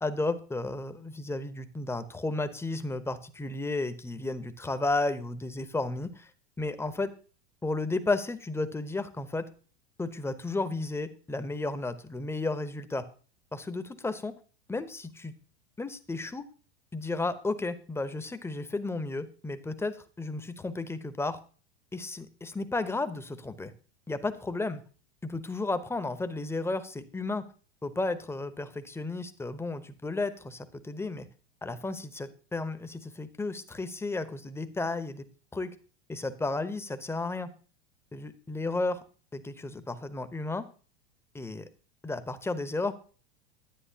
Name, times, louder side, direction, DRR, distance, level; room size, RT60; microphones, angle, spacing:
voice 1, 0.0-6.3 6.6-7.1 7.6-9.5 10.0-13.0 13.5-14.3 14.7-15.3 15.8-16.5 16.9-21.4 21.9-23.7 24.1-24.8 25.2-27.5 27.8-31.3 31.6-35.3 35.5-35.7 36.1-37.5 38.1-39.0 39.3-40.6 41.3-41.7 42.0-42.9, left 2 dB, 10° left, 11 dB, 0.8 m, -33 dB
10.5 x 9.5 x 2.8 m, 0.39 s
hypercardioid pair, 95°, 32 cm